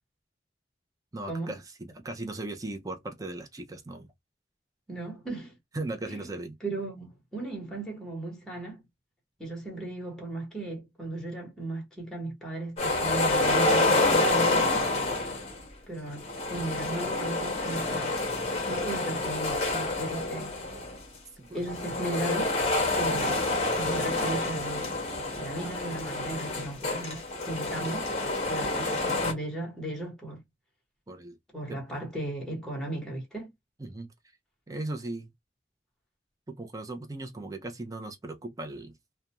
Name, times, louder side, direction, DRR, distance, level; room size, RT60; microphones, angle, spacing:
voice 1, 1.1-4.1 5.7-6.6 14.9-15.7 20.1-20.4 20.7-20.8 21.4-21.7 25.5-25.7 26.1-27.4 31.1-31.3 31.7-31.8 33.8-34.1 34.7-35.3 36.5-38.9, right 2 dB, 20° right, 0.5 m, -39 dB
voice 2, 4.9-5.6 6.1-6.3 6.6-8.8 9.4-14.9 15.9-18.2 18.7-20.5 21.5-22.6 22.9-23.4 23.8-25.0 25.4-28.1 28.5-30.4 31.5-33.5, right 2 dB, 5° left, 1.0 m, -36 dB
sound 1, 12.8-15.6 16.2-21.0 21.6-29.3, left 2 dB, 35° left, 0.7 m, -28 dB
2.4 x 2.1 x 2.8 m
head